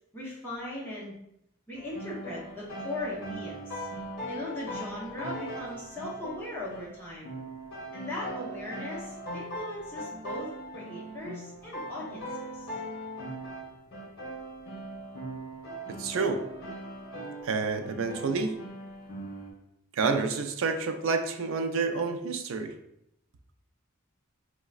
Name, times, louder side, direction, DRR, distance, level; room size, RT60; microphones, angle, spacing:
voice 1, 0.1-1.2 1.7-3.9 4.3-7.3 7.9-12.7, left 1 dB, 10° left, -8 dB, 0.7 m, -39 dB
sound 1, 1.7-17.6 17.8-19.5, equal, 50° left, 0.9 m, -40 dB
voice 2, 15.9-16.4 17.4-18.6 19.9-22.7, right 4 dB, 65° right, 6 dB, 0.4 m, -29 dB
4.6 x 2.1 x 2.4 m, 0.76 s
head